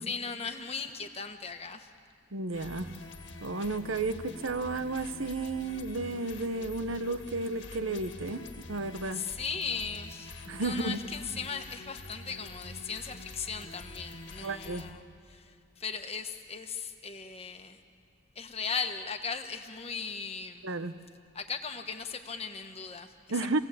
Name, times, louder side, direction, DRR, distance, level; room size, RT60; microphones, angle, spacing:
voice 1, 0.0-1.9 9.1-17.8 18.3-20.7 21.3-23.5, left 5 dB, 30° left, 6 dB, 1.3 m, -38 dB
voice 2, 2.3-2.9 3.4-9.2 10.5-11.0 14.4-14.9 20.6-21.0 23.3-23.6, right 2 dB, 80° right, 11 dB, 1.1 m, -33 dB
sound 1, 2.5-14.9, left 2 dB, 60° left, 1.8 m, -46 dB
29.5 x 17.5 x 8.5 m, 2.4 s
head